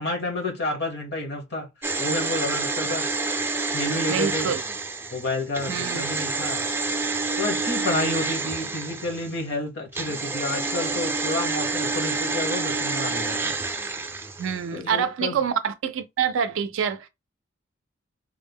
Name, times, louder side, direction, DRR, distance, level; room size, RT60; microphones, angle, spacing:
voice 1, 0.0-3.4 3.7-4.5 5.1-6.6 7.4-13.6 14.7-15.4, left 2 dB, 60° left, 1.1 m, -30 dB
sound 1, 1.8-9.4 9.9-14.6 14.9-15.0, right 3 dB, 10° right, 0.4 m, -28 dB
voice 2, 4.1-4.6 5.7-6.0 14.4-17.1, right 7 dB, 80° right, 0.4 m, -26 dB
3.6 x 2.0 x 3.5 m
head